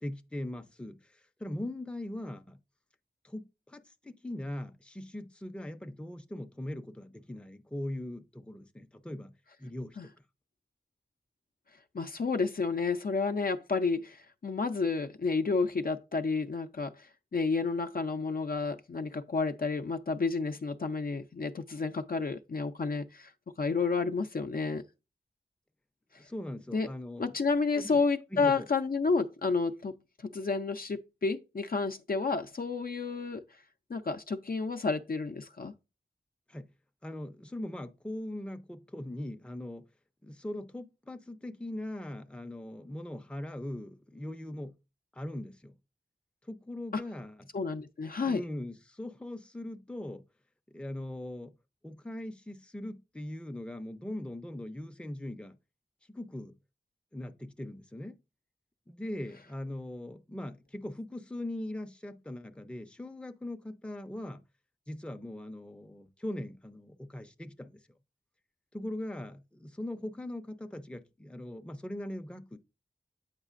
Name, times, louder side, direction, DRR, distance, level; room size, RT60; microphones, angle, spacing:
voice 1, 0.0-2.6 3.2-9.3 9.6-10.1 26.2-27.3 27.7-28.0 28.3-28.7 36.5-36.7 37.0-39.8 40.2-44.8 45.1-45.8 46.5-47.5 48.2-50.2 50.7-51.5 51.8-55.5 56.1-56.6 57.1-58.2 58.9-64.4 64.9-67.8 68.7-72.6, left 1 dB, 5° left, 0.5 m, -40 dB
voice 2, 11.9-16.9 17.3-23.3 23.6-24.8 26.7-26.9 27.2-30.0 30.2-33.4 33.9-35.7 46.9-47.0 47.5-48.4, left 4 dB, 60° left, 0.5 m, -30 dB
8.1 x 4.9 x 2.5 m
wide cardioid pair, 50°, 17 cm